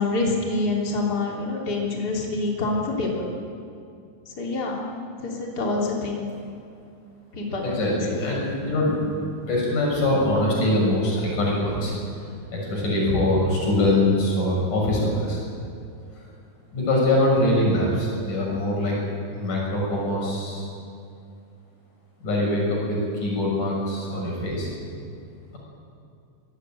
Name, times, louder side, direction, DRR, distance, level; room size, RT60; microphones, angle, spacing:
voice 1, 0.0-3.3 4.4-4.8 5.2-6.3 7.3-8.2, left 3 dB, 30° left, -2 dB, 3.7 m, -26 dB
voice 2, 7.6-9.2 9.5-11.9 12.5-15.4 16.7-19.0 19.4-20.7 22.2-24.7, left 1 dB, 90° left, -3 dB, 8.3 m, -23 dB
23.5 x 17.0 x 9.2 m, 2.5 s
omnidirectional pair, 3.5 m